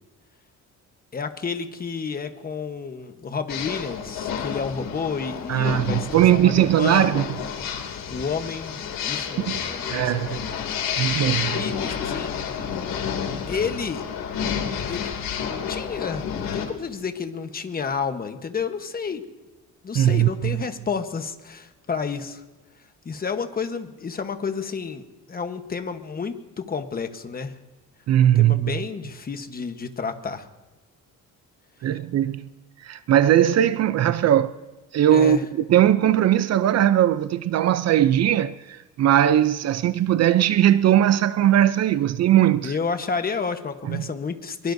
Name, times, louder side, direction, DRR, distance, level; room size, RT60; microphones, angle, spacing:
voice 1, 1.1-7.2 8.1-11.0 11.5-12.3 13.5-14.1 14.9-15.1 15.7-19.2 19.8-22.4 23.0-27.6 28.3-30.5 35.1-35.4 42.6-44.7, left 5 dB, 25° left, 1.1 m, -30 dB
sound 1, 3.5-16.7, left 7 dB, 80° left, 2.7 m, -30 dB
voice 2, 5.5-7.3 9.5-9.6 9.9-10.4 11.0-11.6 19.9-20.6 28.1-28.8 31.8-32.5 32.8-34.5 34.9-42.7 43.9-44.0, right 11 dB, 50° right, 0.5 m, -19 dB
23.5 x 22.5 x 2.7 m
cardioid pair, 150°, 33 cm